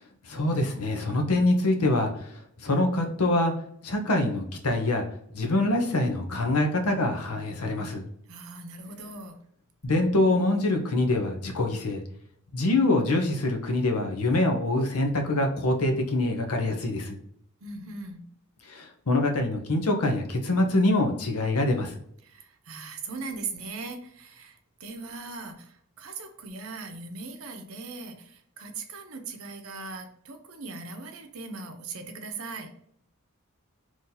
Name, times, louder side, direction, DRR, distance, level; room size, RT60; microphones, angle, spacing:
voice 1, 0.3-2.3 2.6-3.5 3.8-5.0 5.3-8.0 9.8-12.0 12.5-17.2 18.7-21.9, left 2 dB, 80° left, 4 dB, 0.8 m, -25 dB
voice 2, 8.3-9.3 17.6-18.2 22.2-32.7, right 4 dB, 70° right, 5 dB, 0.7 m, -39 dB
3.1 x 2.7 x 3.9 m, 0.67 s
head